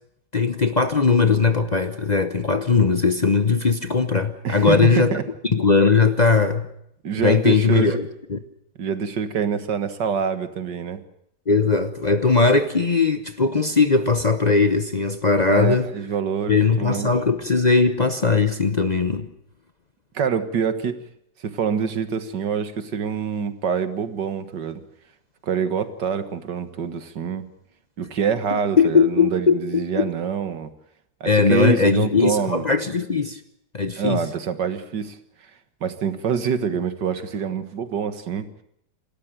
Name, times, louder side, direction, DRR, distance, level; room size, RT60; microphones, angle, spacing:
voice 1, 0.3-5.1 5.4-6.7 7.1-8.4 11.5-15.9 16.5-19.3 28.5-29.6 29.9-30.1 31.2-33.4 33.7-34.2, left 4 dB, 35° left, 10 dB, 0.8 m, -19 dB
voice 2, 4.4-5.2 7.0-8.0 8.8-11.0 15.5-17.1 20.1-21.0 21.4-24.8 25.4-27.5 28.0-30.7 31.2-32.7 34.0-35.2 35.8-38.5, right 7 dB, 85° right, 10 dB, 2.1 m, -25 dB
28.0 x 13.0 x 9.0 m, 0.74 s
omnidirectional pair, 1.8 m